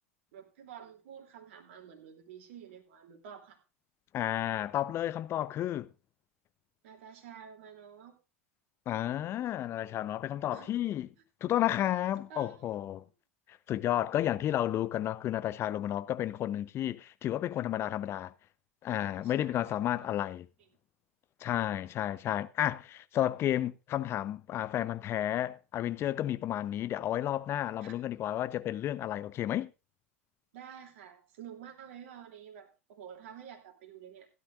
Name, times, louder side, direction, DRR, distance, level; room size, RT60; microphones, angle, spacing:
voice 1, 0.3-3.6 6.8-8.2 10.5-10.7 12.3-13.0 19.2-19.8 27.8-28.0 30.5-34.3, right 8 dB, 60° right, 2.9 m, -50 dB
voice 2, 4.1-5.9 8.9-11.1 11.4-13.0 13.7-18.3 18.8-20.5 21.4-29.7, left 12 dB, 35° left, 0.8 m, -32 dB
16.5 x 11.5 x 2.5 m
figure-of-eight pair, 85°, 8 cm